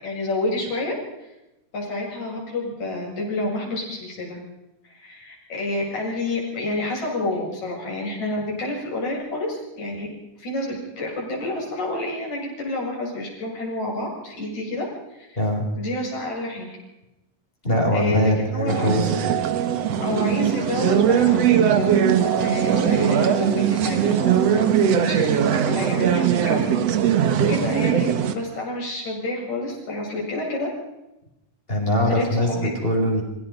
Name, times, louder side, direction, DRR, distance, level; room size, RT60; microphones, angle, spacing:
voice 1, 0.0-1.0 1.7-4.4 4.9-10.1 10.4-14.9 15.2-15.4 15.8-16.7 17.9-18.9 20.0-26.7 27.5-30.7 32.1-32.7, left 2 dB, 60° left, -2 dB, 8.8 m, -29 dB
voice 2, 17.6-19.3 31.7-33.2, equal, 15° left, 1 dB, 5.1 m, -22 dB
sound 1, 18.7-28.3, right 9 dB, 55° right, 2.2 m, -20 dB
29.5 x 16.5 x 5.4 m, 0.95 s
omnidirectional pair, 3.8 m